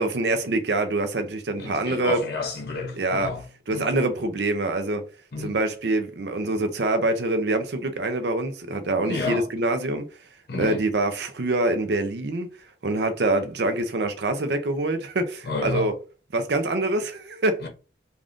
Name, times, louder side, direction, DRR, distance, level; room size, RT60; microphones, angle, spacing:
voice 1, 0.0-2.2 2.9-3.3 3.7-5.0 5.4-10.1 10.6-12.5 12.8-15.9 16.3-17.6, right 2 dB, 70° right, 0.5 m, -25 dB
voice 2, 1.6-3.4 3.7-3.9 5.3-5.6 9.0-9.5 10.5-10.8 15.4-15.9 17.6-17.7, left 4 dB, 60° left, 0.7 m, -30 dB
3.5 x 2.4 x 2.5 m
head